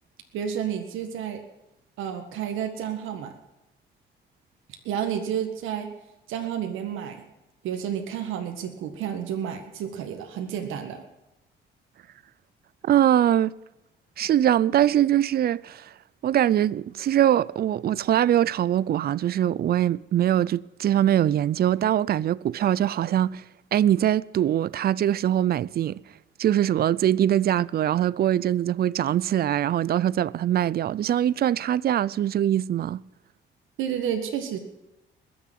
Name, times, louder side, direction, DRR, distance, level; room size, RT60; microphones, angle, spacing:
voice 1, 0.3-1.4 2.0-3.3 4.9-5.9 6.3-7.3 7.6-11.0 33.8-34.6, right 9 dB, 90° right, 1.7 m, -30 dB
voice 2, 12.8-13.5 14.2-15.9 16.2-23.4 23.7-26.0 26.4-33.0, right 11 dB, 50° right, 0.5 m, -22 dB
21.0 x 7.1 x 9.3 m
cardioid pair, 90°, 20 cm